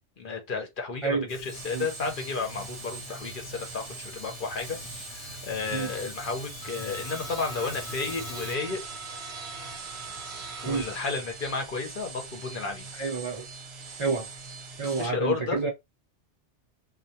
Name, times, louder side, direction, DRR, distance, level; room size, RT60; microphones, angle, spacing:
voice 1, 0.2-8.8 10.6-12.9 14.8-15.6, left 4 dB, 55° left, 0.8 m, -32 dB
Fire, 1.3-8.6, left 4 dB, 80° left, 0.9 m, -44 dB
sound 1, 1.4-15.1, right 4 dB, 70° right, 0.9 m, -41 dB
voice 2, 12.9-13.5 14.0-14.3 14.8-15.7, right 4 dB, 45° right, 0.4 m, -29 dB
2.2 x 2.2 x 2.6 m
omnidirectional pair, 1.2 m